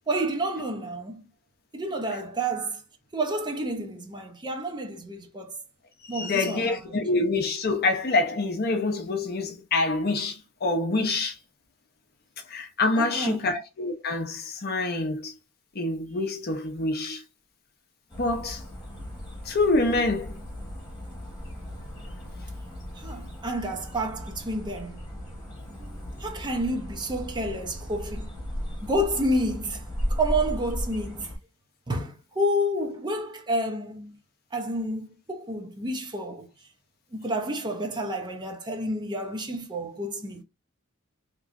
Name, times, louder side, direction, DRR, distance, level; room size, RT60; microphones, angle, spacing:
voice 1, 0.1-1.2 1.7-2.8 3.1-5.6 6.1-7.0 13.0-13.5 23.0-25.0 25.7-28.3 28.8-29.8 30.1-31.3 31.9-34.1 34.5-36.5 37.1-40.4, right 1 dB, 20° right, 0.7 m, -30 dB
voice 2, 6.1-11.4 12.5-15.3 15.7-17.2 18.2-18.6 19.4-20.3, left 3 dB, 45° left, 0.7 m, -26 dB
sound 1, 18.1-31.4, equal, 20° left, 1.4 m, -36 dB
3.7 x 3.0 x 2.5 m
head